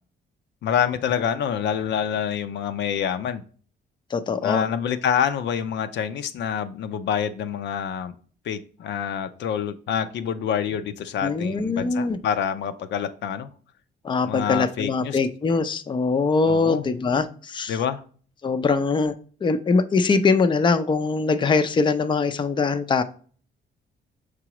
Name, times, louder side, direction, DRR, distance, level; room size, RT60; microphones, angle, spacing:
voice 1, 0.6-3.4 4.4-8.1 8.5-13.5 14.2-15.2 16.5-16.8 17.7-18.0, left 8 dB, 75° left, 9 dB, 0.6 m, -27 dB
voice 2, 4.1-4.7 11.2-12.2 14.0-17.8 18.4-19.1 19.4-23.0, left 4 dB, 25° left, 9 dB, 0.5 m, -22 dB
6.6 x 4.8 x 3.0 m, 0.43 s
cardioid pair, 105°, 19 cm